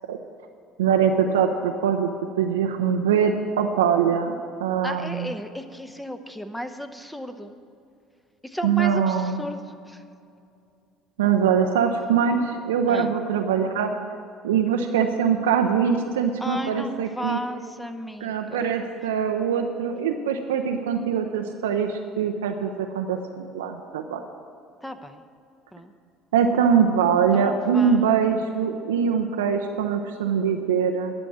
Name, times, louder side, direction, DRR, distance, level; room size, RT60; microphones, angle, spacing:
voice 1, 0.8-2.1 2.4-4.3 4.6-5.3 8.6-9.4 11.2-13.9 14.4-17.4 18.2-24.2 26.3-31.1, right 7 dB, 80° right, 4 dB, 0.5 m, -23 dB
voice 2, 4.8-7.5 8.4-10.0 12.9-13.1 16.4-18.7 24.8-25.2 25.7-25.9 27.3-28.2, equal, 5° left, 8 dB, 0.9 m, -34 dB
11.5 x 6.2 x 8.4 m, 2.5 s
hypercardioid pair, 60°, 0 cm